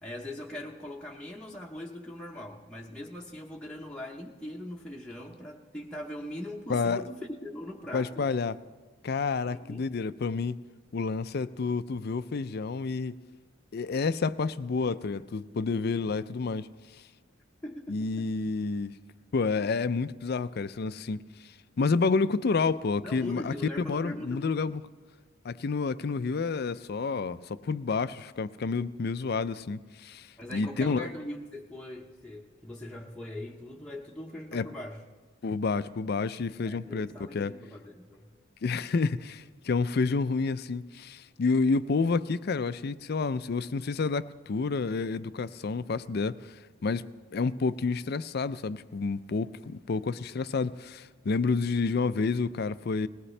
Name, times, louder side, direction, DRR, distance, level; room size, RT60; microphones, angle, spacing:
voice 1, 0.0-8.3 9.4-9.8 17.6-18.3 23.0-24.8 30.4-35.0 36.6-38.3, left 1 dB, 5° left, 0.9 m, -41 dB
voice 2, 6.7-7.0 7.9-8.6 9.0-10.6 10.9-13.2 13.7-16.7 17.9-18.9 19.3-21.2 21.8-24.8 25.4-30.3 30.5-31.1 34.5-34.7 35.4-37.5 38.6-46.4 46.8-47.0 47.3-53.1, left 4 dB, 55° left, 0.4 m, -29 dB
20.0 x 18.5 x 3.3 m
head